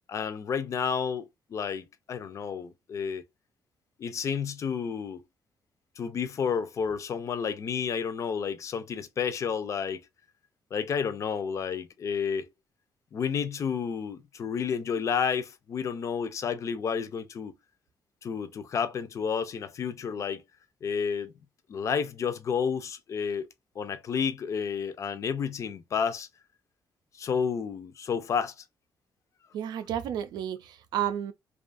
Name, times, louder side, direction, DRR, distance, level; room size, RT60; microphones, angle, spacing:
voice 1, 0.1-3.2 4.0-5.2 6.0-10.0 10.7-12.5 13.1-17.5 18.2-20.4 20.8-21.3 21.7-23.5 23.8-26.3 27.2-28.6, left 6 dB, 45° left, 0.4 m, -31 dB
voice 2, 29.5-31.3, right 10 dB, 90° right, 0.4 m, -31 dB
2.6 x 2.3 x 2.5 m
cardioid pair, 120°, 7 cm